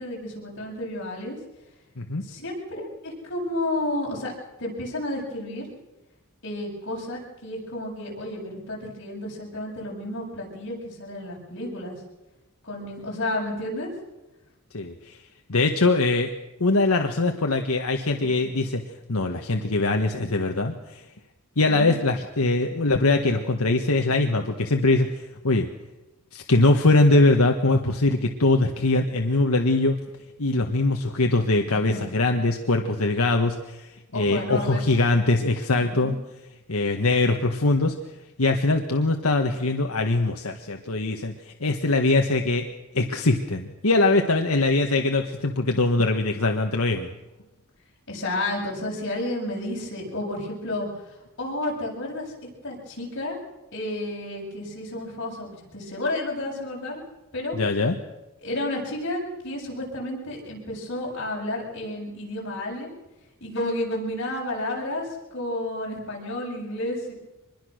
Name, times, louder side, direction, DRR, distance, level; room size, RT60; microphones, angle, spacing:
voice 1, 0.0-1.4 2.2-4.3 4.6-5.7 6.4-12.0 12.6-13.9 21.7-22.0 31.6-32.0 32.3-32.4 34.1-34.8 35.8-36.2 48.1-50.9 51.4-53.4 53.7-57.0 57.3-57.6 58.4-62.9 63.4-67.1, left 1 dB, 60° left, -2 dB, 7.7 m, -31 dB
voice 2, 14.7-15.2 15.5-16.3 16.6-18.8 19.1-21.0 21.6-25.7 26.3-29.9 30.4-36.1 36.7-38.0 38.4-42.6 42.9-47.1 57.5-57.9, left 2 dB, 90° left, 3 dB, 1.5 m, -22 dB
24.5 x 21.5 x 6.5 m, 1.0 s
head